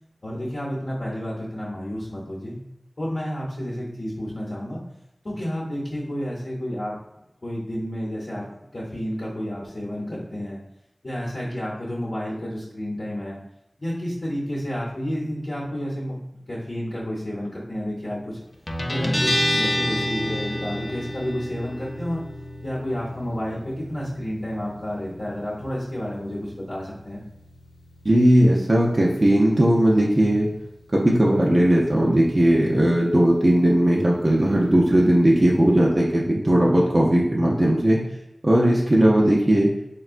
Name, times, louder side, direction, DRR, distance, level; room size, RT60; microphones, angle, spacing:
voice 1, 0.2-2.6 3.0-4.8 5.2-6.9 7.4-8.5 8.7-10.6 11.0-13.4 13.8-18.4 18.9-22.2 22.6-27.2, equal, 60° left, -5 dB, 0.8 m, -30 dB
Guitar, 18.7-35.9, left 1 dB, 40° left, 0.4 m, -32 dB
voice 2, 28.0-30.5 30.9-38.0 38.4-39.7, right 1 dB, 40° right, -4 dB, 0.5 m, -18 dB
3.5 x 2.2 x 2.4 m, 0.88 s
wide cardioid pair, 45°, 0 cm